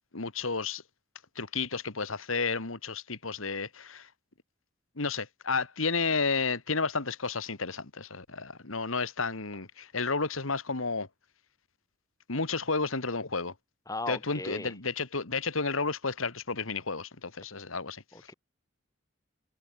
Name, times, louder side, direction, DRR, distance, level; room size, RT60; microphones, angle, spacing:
voice 1, 0.1-0.8 1.4-4.1 5.0-11.1 12.3-13.5 14.1-18.0, left 4 dB, 85° left, 2.1 m, -32 dB
voice 2, 13.9-14.7 18.1-18.3, left 2 dB, 15° left, 2.0 m, -37 dB
head